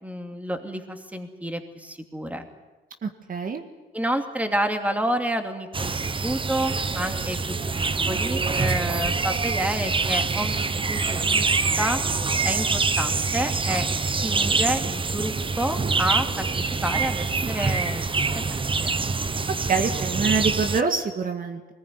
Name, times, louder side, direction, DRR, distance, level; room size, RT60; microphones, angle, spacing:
voice 1, 0.0-2.5 3.9-12.0 12.4-13.9 14.2-18.0 18.3-18.9, right 1 dB, 5° right, 5 dB, 2.7 m, -29 dB
voice 2, 3.0-3.6 19.5-21.7, right 5 dB, 45° right, 6 dB, 1.8 m, -26 dB
sound 1, 5.7-20.8, right 4 dB, 25° right, 1.0 m, -25 dB
22.0 x 19.5 x 9.6 m, 1.2 s
cardioid pair, 90°, 20 cm